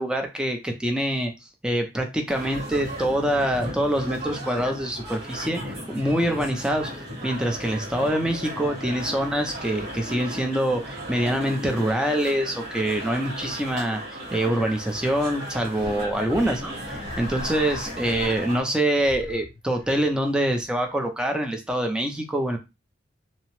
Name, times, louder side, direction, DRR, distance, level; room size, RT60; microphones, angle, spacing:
voice 1, 0.0-1.3 1.6-6.9 7.2-14.0 14.3-22.6, right 1 dB, 5° right, 3 dB, 0.4 m, -25 dB
sound 1, 2.3-18.6, equal, 50° right, 1.6 m, -35 dB
sound 2, 15.8-18.7 18.9-21.0, left 2 dB, 60° left, 0.6 m, -41 dB
2.8 x 2.0 x 3.0 m, 0.25 s
head